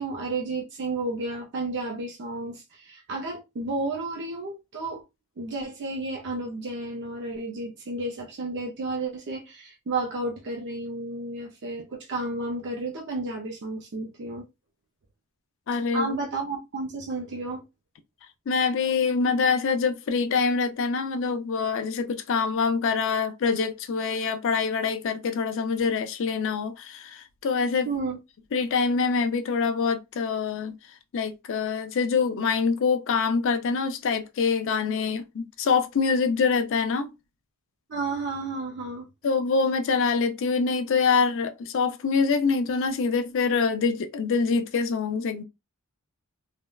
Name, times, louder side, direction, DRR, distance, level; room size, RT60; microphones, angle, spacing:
voice 1, 0.0-5.0 5.4-14.4 15.9-17.6 27.9-28.2 37.9-39.1, right 2 dB, 55° right, 0.5 m, -32 dB
voice 2, 15.7-16.1 18.5-27.9 28.5-30.8 31.1-37.1 39.2-45.4, left 5 dB, 60° left, 0.4 m, -25 dB
3.4 x 2.1 x 2.3 m
head